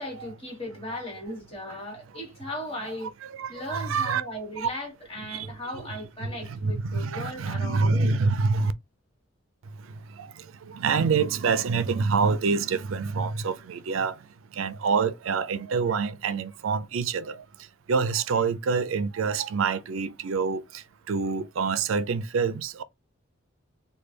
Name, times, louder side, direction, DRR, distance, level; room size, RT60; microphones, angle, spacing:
voice 1, 0.0-3.1 3.5-8.2, left 1 dB, 30° left, 1.4 m, -37 dB
voice 2, 3.2-4.2 4.6-4.7 5.3-8.7 9.6-22.8, right 5 dB, 75° right, 0.4 m, -27 dB
3.1 x 2.2 x 3.3 m
head